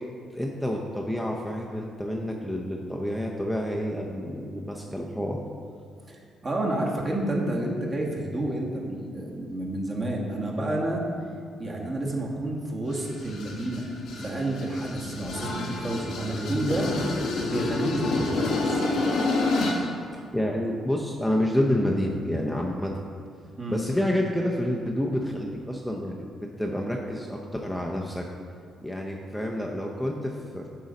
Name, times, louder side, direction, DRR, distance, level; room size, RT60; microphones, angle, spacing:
voice 1, 0.3-5.4 20.3-22.9 23.7-26.3 26.6-28.2 28.8-30.7, left 1 dB, ahead, -1 dB, 0.6 m, -28 dB
voice 2, 6.1-11.0 11.6-13.9 14.2-16.9 17.4-18.8 23.6-23.8, right 1 dB, 35° right, -2 dB, 1.3 m, -30 dB
sound 1, 12.9-19.9, left 2 dB, 75° left, 1.0 m, -29 dB
8.1 x 3.9 x 5.2 m, 2.2 s
cardioid pair, 90°, 0 cm